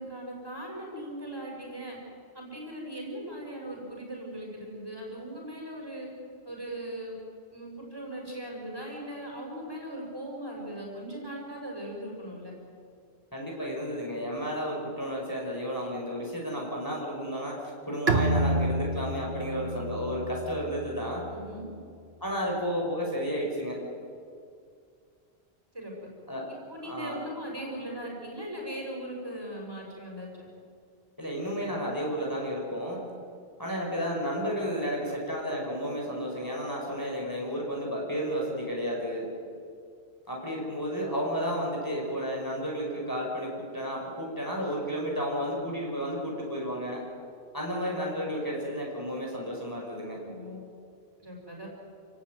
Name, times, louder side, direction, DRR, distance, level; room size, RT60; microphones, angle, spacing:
voice 1, 0.0-2.0 2.3-6.1 6.4-7.1 7.5-12.5 21.3-21.7 25.7-25.9 26.7-30.5 50.2-50.6 51.2-51.7, right 1 dB, 20° right, -1 dB, 6.3 m, -39 dB
voice 2, 13.3-21.2 22.2-23.8 26.3-26.4 26.8-27.2 31.2-33.1 33.6-39.3 40.3-47.1 47.5-50.2, equal, 20° left, -2 dB, 5.4 m, -32 dB
Bowed string instrument, 18.1-21.5, right 1 dB, 70° right, 1.9 m, -29 dB
29.0 x 17.5 x 9.2 m, 2.3 s
omnidirectional pair, 1.1 m